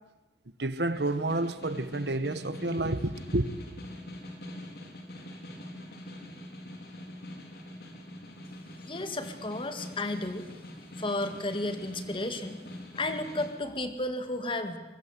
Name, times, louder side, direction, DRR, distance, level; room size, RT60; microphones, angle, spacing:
voice 1, 0.6-3.5, right 2 dB, 70° right, 1.4 m, -29 dB
Snare drum, 0.8-13.5, left 1 dB, 60° left, 4.3 m, -44 dB
voice 2, 8.8-10.5 11.0-12.6 12.9-14.8, left 2 dB, 30° left, 2.2 m, -33 dB
24.0 x 22.5 x 8.4 m
head